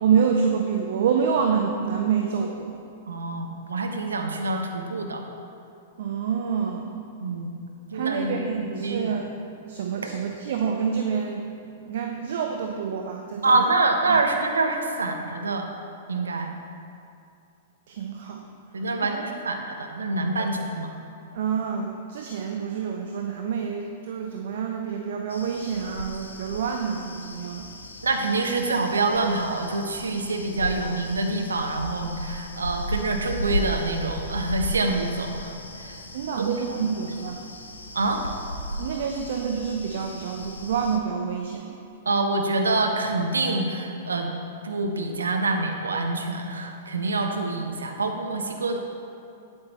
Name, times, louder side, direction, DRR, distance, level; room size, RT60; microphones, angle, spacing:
voice 1, 0.0-2.8 6.0-7.0 7.9-9.3 9.7-13.7 14.1-14.2 17.9-18.4 18.8-19.3 20.4-20.5 21.3-27.7 36.1-37.5 38.8-41.9 47.6-47.7, right 6 dB, 55° right, 2 dB, 0.7 m, -27 dB
voice 2, 3.1-5.2 7.2-7.5 7.9-9.2 13.4-15.7 16.1-16.5 18.7-20.9 28.0-35.5 35.8-36.0 36.4-36.9 37.9-38.2 42.0-44.3 44.6-48.8, right 3 dB, 75° right, 3 dB, 1.0 m, -26 dB
sound 1, 25.3-41.0, equal, 80° left, 0.8 m, -36 dB
8.8 x 8.1 x 4.2 m, 2.6 s
figure-of-eight pair, 105°, 0 cm